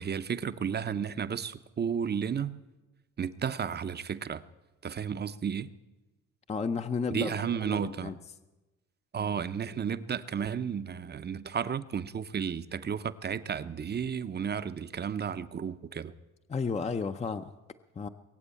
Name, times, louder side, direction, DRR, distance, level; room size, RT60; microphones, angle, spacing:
voice 1, 0.0-2.6 3.2-4.4 4.8-5.7 7.1-8.1 9.1-16.1, right 7 dB, 35° right, 13 dB, 0.6 m, -33 dB
voice 2, 6.5-7.3 7.6-8.1 16.5-17.5 18.0-18.1, left 5 dB, 20° left, 9 dB, 0.5 m, -32 dB
21.5 x 8.0 x 8.3 m, 1.1 s
cardioid pair, 90°, 30 cm